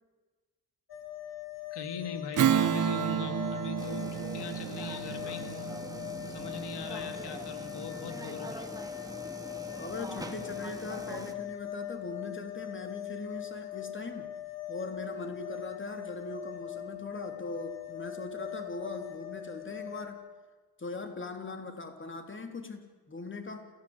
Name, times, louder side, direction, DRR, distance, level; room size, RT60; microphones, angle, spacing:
sound 1, 0.9-20.1, left 13 dB, 65° left, 4.0 m, -41 dB
voice 1, 1.7-5.7 6.3-8.7, left 6 dB, 85° left, 7 dB, 2.2 m, -41 dB
Strum, 2.4-7.3, right 9 dB, 50° right, 0.8 m, -31 dB
sound 2, 3.8-11.3, right 2 dB, 10° right, 2.2 m, -43 dB
voice 2, 9.7-14.3 14.7-20.2 20.8-23.6, left 3 dB, 30° left, 5 dB, 3.5 m, -40 dB
28.0 x 17.5 x 8.1 m, 1.3 s
cardioid pair, 105°, 40 cm